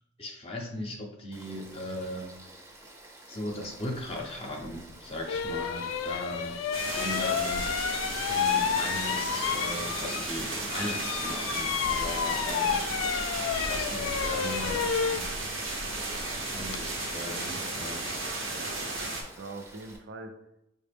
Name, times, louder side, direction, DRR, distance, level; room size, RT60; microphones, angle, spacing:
voice 1, 0.2-2.3 3.3-6.6 6.9-7.7 8.3-12.9 13.5-15.3 16.0-18.1, left 1 dB, 30° left, 0 dB, 0.6 m, -38 dB
Frog / Stream, 1.3-20.0, right 2 dB, 15° right, 0.6 m, -51 dB
sound 1, 4.6-4.7 5.3-10.4 10.7-16.8, left 7 dB, 80° left, 0.3 m, -31 dB
sound 2, 6.7-19.2, right 2 dB, 90° right, 0.9 m, -34 dB
voice 2, 18.5-20.3, right 3 dB, 60° right, 5 dB, 0.4 m, -44 dB
4.8 x 2.1 x 3.4 m, 0.86 s
head